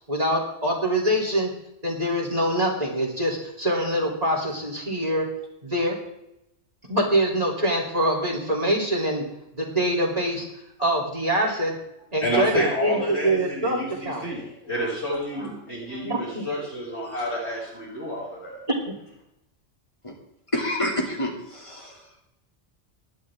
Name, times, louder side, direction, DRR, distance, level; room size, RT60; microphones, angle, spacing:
voice 1, 0.0-1.5 1.8-5.3 5.6-6.0 6.9-9.2 9.5-10.5 10.8-11.7 12.1-13.8 14.0-14.2 15.5-15.6 16.0-16.4 18.7-19.0, right 1 dB, 30° right, -2 dB, 3.5 m, -24 dB
voice 2, 12.2-18.6, equal, 70° left, -5 dB, 7.4 m, -30 dB
voice 3, 20.5-22.0, left 1 dB, 25° left, -1 dB, 2.9 m, -28 dB
19.0 x 11.5 x 3.7 m, 0.83 s
omnidirectional pair, 1.2 m